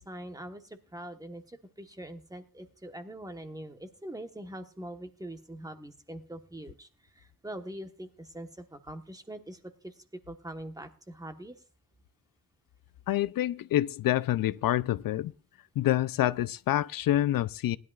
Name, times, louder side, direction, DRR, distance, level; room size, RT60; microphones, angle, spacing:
voice 1, 0.0-6.9 7.1-11.6, right 1 dB, 10° right, 1.2 m, -43 dB
voice 2, 13.1-15.3 15.8-17.8, left 13 dB, 80° left, 0.5 m, -27 dB
19.0 x 11.0 x 2.4 m
wide cardioid pair, 135°, 34 cm